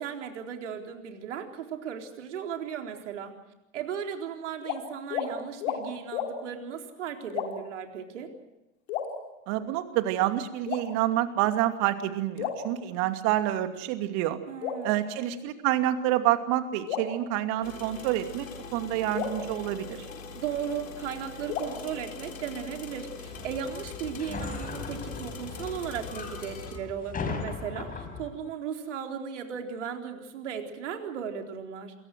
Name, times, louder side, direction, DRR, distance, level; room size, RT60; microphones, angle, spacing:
voice 1, 0.0-3.3 3.7-8.3 14.5-15.2 20.3-31.9, right 7 dB, 60° right, 4 dB, 4.1 m, -36 dB
sound 1, 4.6-4.8 5.1-5.3 5.6-5.8 6.1-6.3 7.3-7.8 8.9-9.7 10.7-11.4 12.4-13.4 14.6-15.7 16.9-18.1 19.1-20.6 21.5-22.7, left 8 dB, 50° left, 5.5 m, -36 dB
voice 2, 9.5-14.4 14.8-18.5 18.7-20.0, right 13 dB, 40° right, 8 dB, 2.6 m, -28 dB
sound 2, 17.6-26.8, left 4 dB, 70° left, 4.0 m, -42 dB
sound 3, 23.3-28.3, left 4 dB, 20° left, 5.7 m, -38 dB
28.0 x 23.0 x 6.4 m, 0.94 s
figure-of-eight pair, 100°, 41 cm